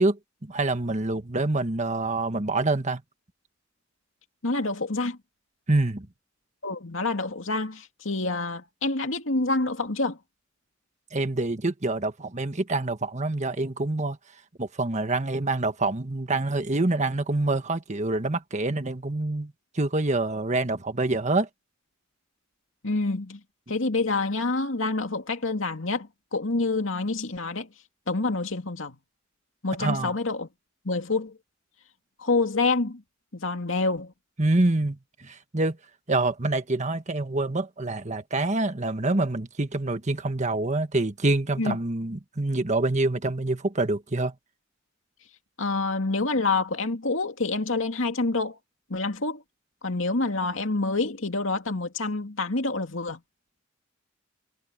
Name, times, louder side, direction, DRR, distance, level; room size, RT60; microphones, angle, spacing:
voice 1, 0.0-3.0 5.7-6.1 11.1-14.2 14.6-21.5 29.8-30.1 34.4-35.8 36.1-44.3, right 2 dB, 35° right, 1.5 m, -26 dB
voice 2, 4.4-5.2 6.6-10.2 22.8-23.4 23.7-27.7 28.1-29.0 29.6-30.5 30.8-31.4 32.2-33.0 33.3-34.1 41.6-41.8 45.6-48.6 48.9-49.4 49.8-53.2, left 3 dB, 75° left, 2.5 m, -27 dB
head